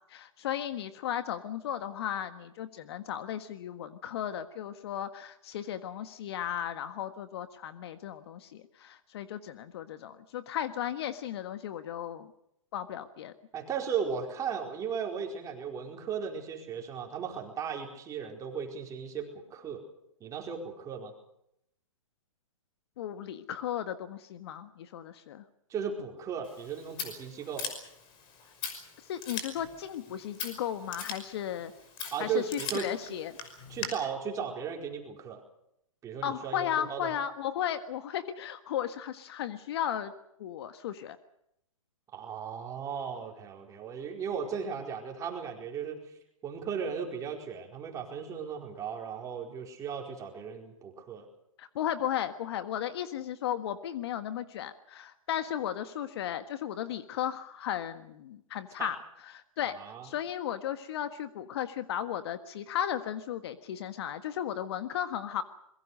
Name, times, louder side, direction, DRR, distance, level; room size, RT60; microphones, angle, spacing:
voice 1, 0.1-12.3 12.7-13.3 23.0-25.4 28.7-31.7 32.2-33.4 36.2-40.1 40.4-41.2 51.6-59.0 59.2-59.7 60.0-65.4, left 10 dB, 50° left, 10 dB, 1.5 m, -35 dB
voice 2, 13.5-19.8 20.2-21.1 25.7-27.7 32.1-32.9 33.7-35.4 36.0-37.1 42.1-46.1 46.4-51.3 58.8-58.9 59.7-60.1, right 6 dB, 20° right, 2 dB, 4.6 m, -36 dB
Scissors, 26.4-33.9, left 6 dB, 30° left, 5.6 m, -41 dB
25.0 x 22.0 x 6.5 m, 0.77 s
hypercardioid pair, 135°, 17 cm